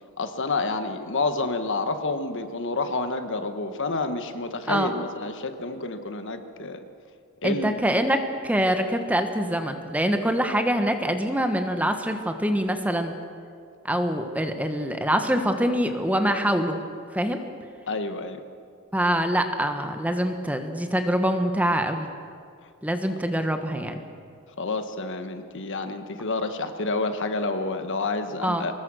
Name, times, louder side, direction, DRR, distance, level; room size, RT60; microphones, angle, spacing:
voice 1, 0.2-6.8 7.4-7.7 17.9-18.4 24.6-28.7, left 3 dB, 55° left, 8 dB, 1.4 m, -29 dB
voice 2, 7.4-13.1 13.8-16.8 17.1-17.4 18.9-22.1 22.8-24.0 28.4-28.7, equal, 5° right, 6 dB, 1.3 m, -24 dB
24.5 x 20.5 x 6.4 m, 2.3 s
head